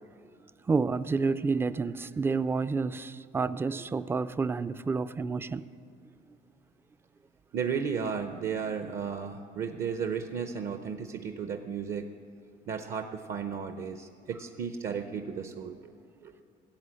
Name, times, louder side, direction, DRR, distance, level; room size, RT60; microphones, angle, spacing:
voice 1, 0.7-5.6, right 4 dB, 15° right, 14 dB, 0.3 m, -29 dB
voice 2, 7.5-12.1 12.7-15.9 16.2-16.3, right 6 dB, 55° right, 7 dB, 0.7 m, -34 dB
15.5 x 8.2 x 7.6 m, 2.5 s
cardioid pair, 110°, 17 cm